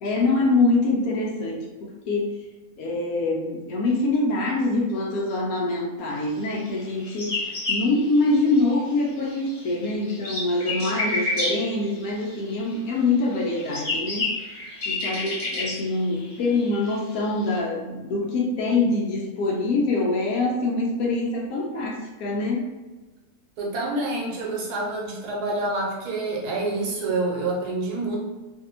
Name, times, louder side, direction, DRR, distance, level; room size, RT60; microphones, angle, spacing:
voice 1, 0.0-2.3 2.8-14.3 14.9-22.6, left 2 dB, 70° left, -1 dB, 1.0 m, -24 dB
sound 1, 6.7-8.9 9.2-12.8 13.3-17.6, left 2 dB, 45° left, 1.0 m, -30 dB
voice 2, 23.6-28.2, right 2 dB, 80° right, -2 dB, 1.3 m, -27 dB
2.6 x 2.6 x 2.9 m, 1.2 s
omnidirectional pair, 1.7 m